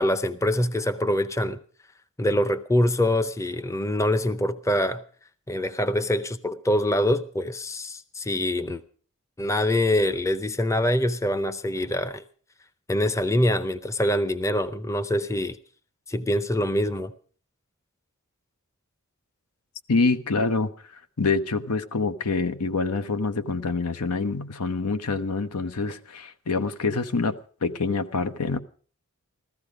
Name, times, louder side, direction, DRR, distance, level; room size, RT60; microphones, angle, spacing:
voice 1, 0.0-1.6 2.2-5.0 5.5-8.8 9.4-12.2 12.9-15.6 16.1-17.1, left 1 dB, 15° left, 0.6 m, -24 dB
voice 2, 19.9-28.6, left 3 dB, 90° left, 0.9 m, -26 dB
14.5 x 14.5 x 5.0 m
head